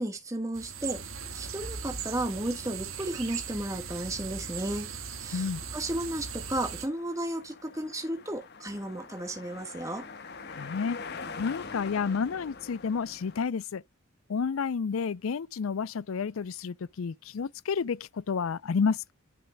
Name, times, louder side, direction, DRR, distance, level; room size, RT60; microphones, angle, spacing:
voice 1, 0.0-4.9 5.2-10.1, right 1 dB, 15° right, 1.4 m, -34 dB
sound 1, 0.5-6.9, right 6 dB, 75° right, 1.6 m, -39 dB
sound 2, 4.5-13.5, left 4 dB, 50° left, 1.2 m, -45 dB
voice 2, 10.5-11.0 11.4-13.8 14.3-19.1, left 5 dB, 75° left, 0.5 m, -30 dB
11.0 x 6.1 x 2.2 m
head